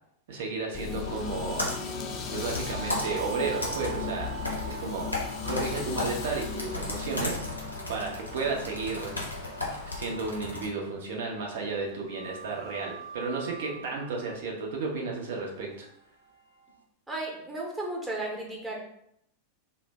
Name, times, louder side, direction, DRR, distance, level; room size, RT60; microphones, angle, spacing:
voice 1, 0.3-1.7 2.3-4.3 4.7-5.2 5.5-9.1 9.7-15.9, right 4 dB, 55° right, 0 dB, 0.7 m, -33 dB
sound 1, 0.7-11.8 12.1-12.5, left 7 dB, 35° left, 0.3 m, -39 dB
Computer keyboard, 1.0-10.7, left 2 dB, 85° left, 0.6 m, -36 dB
sound 2, 2.4-11.2 12.1-16.8, right 7 dB, 90° right, 0.3 m, -44 dB
voice 2, 17.1-18.8, right 2 dB, 10° right, -3 dB, 0.8 m, -34 dB
2.6 x 2.1 x 3.2 m, 0.73 s
figure-of-eight pair, 90°, 0 cm